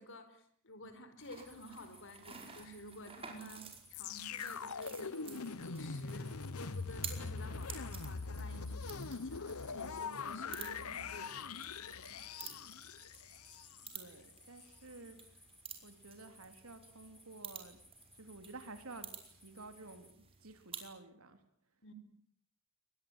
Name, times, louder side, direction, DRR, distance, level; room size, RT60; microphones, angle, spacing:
voice 1, 0.0-12.6 15.0-15.1 21.8-21.9, equal, 60° left, 10 dB, 4.6 m, -52 dB
sound 1, 1.2-20.9, right 6 dB, 25° right, 5.0 m, -52 dB
sound 2, 1.4-20.1, equal, ahead, 4.2 m, -63 dB
sound 3, 3.9-14.0 14.6-14.7, left 4 dB, 85° left, 1.0 m, -42 dB
voice 2, 13.9-15.2 15.8-17.8 18.2-21.4, right 3 dB, 70° right, 8 dB, 3.9 m, -52 dB
24.0 x 20.5 x 9.2 m, 0.65 s
head